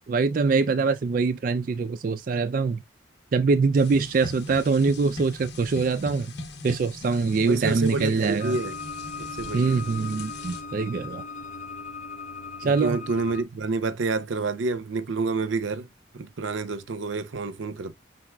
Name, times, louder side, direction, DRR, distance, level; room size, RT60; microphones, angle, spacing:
voice 1, 0.1-2.8 3.3-6.3 6.6-8.6 9.5-11.2 12.6-13.0, right 4 dB, 45° right, 0.3 m, -24 dB
sound 1, 3.8-10.6, left 2 dB, 60° left, 1.1 m, -40 dB
voice 2, 7.5-8.7 9.2-9.7 12.6-15.9 16.1-17.9, right 3 dB, 85° right, 0.6 m, -28 dB
sound 2, 8.4-13.4, left 4 dB, 35° left, 0.4 m, -38 dB
5.9 x 4.0 x 2.2 m
head